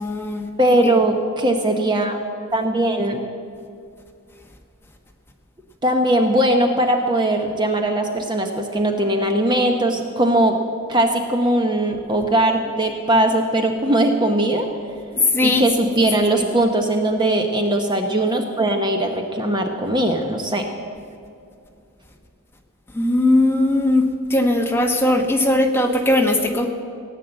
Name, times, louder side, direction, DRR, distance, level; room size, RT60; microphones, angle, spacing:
voice 1, 0.0-0.5 0.8-1.0 15.1-15.7 16.0-16.1 16.4-16.5 22.9-24.0 24.3-26.7, left 1 dB, 10° left, 2 dB, 1.2 m, -19 dB
voice 2, 0.6-2.2 2.5-3.2 5.8-10.6 10.9-14.7 15.4-20.7, right 1 dB, 20° right, 4 dB, 0.9 m, -20 dB
17.0 x 9.3 x 7.8 m, 2.4 s
head